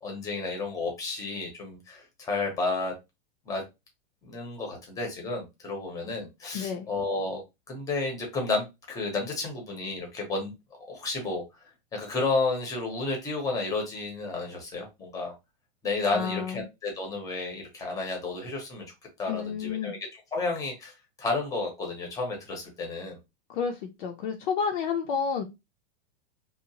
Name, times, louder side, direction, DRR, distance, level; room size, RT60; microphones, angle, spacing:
voice 1, 0.0-2.9 3.5-3.6 4.2-7.4 7.7-10.5 10.9-15.3 15.8-18.8 19.2-23.2, left 3 dB, 10° left, 2 dB, 0.7 m, -32 dB
voice 2, 6.5-6.9 16.1-16.6 19.3-19.9 23.5-25.4, left 6 dB, 55° left, 3 dB, 0.5 m, -30 dB
2.9 x 2.0 x 2.7 m, 0.22 s
supercardioid pair, 155°, 30 cm